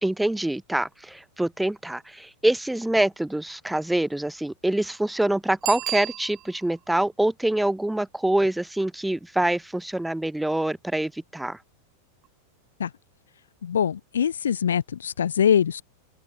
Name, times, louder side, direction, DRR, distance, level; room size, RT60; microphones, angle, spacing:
voice 1, 0.0-11.6, right 1 dB, 5° right, 1.2 m, -25 dB
Bicycle bell, 5.6-6.8 12.2-12.3, right 17 dB, 35° right, 5.8 m, -33 dB
voice 2, 13.6-15.8, left 8 dB, 65° left, 1.0 m, -23 dB
open air
figure-of-eight pair, 90°, 0 cm